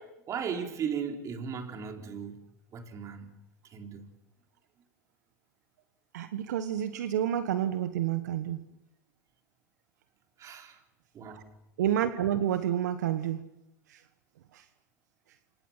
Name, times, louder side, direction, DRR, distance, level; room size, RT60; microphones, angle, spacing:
voice 1, 0.0-2.4 2.7-3.3 3.7-4.1 10.4-10.8 11.1-11.5, right 7 dB, 35° right, 4.1 m, -37 dB
voice 2, 6.1-8.6 11.3-11.4 11.8-13.5 13.9-14.0 14.5-14.6, right 11 dB, 80° right, 1.3 m, -29 dB
29.0 x 26.5 x 5.8 m
hypercardioid pair, 105°, 9 cm